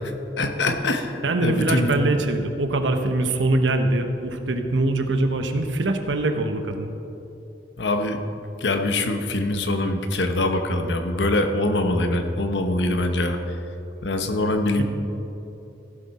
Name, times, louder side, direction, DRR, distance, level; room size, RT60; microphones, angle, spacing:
voice 1, 0.4-2.0 7.8-8.2 8.6-13.6 14.0-14.8, left 2 dB, 70° left, 6 dB, 1.0 m, -23 dB
voice 2, 1.2-6.9 14.8-14.9, right 2 dB, 85° right, 6 dB, 0.9 m, -23 dB
16.0 x 7.6 x 4.2 m, 2.9 s
head